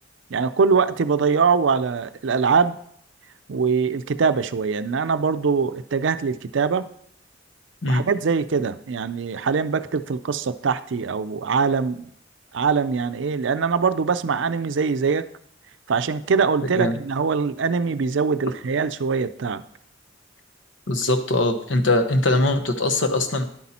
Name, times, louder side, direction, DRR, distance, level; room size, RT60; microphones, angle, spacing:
voice 1, 0.3-2.8 3.5-6.9 7.9-12.1 12.5-15.3 15.9-19.6, right 5 dB, 65° right, 12 dB, 0.5 m, -22 dB
voice 2, 20.9-23.4, left 2 dB, 70° left, 6 dB, 1.1 m, -21 dB
11.0 x 8.4 x 4.3 m, 0.67 s
head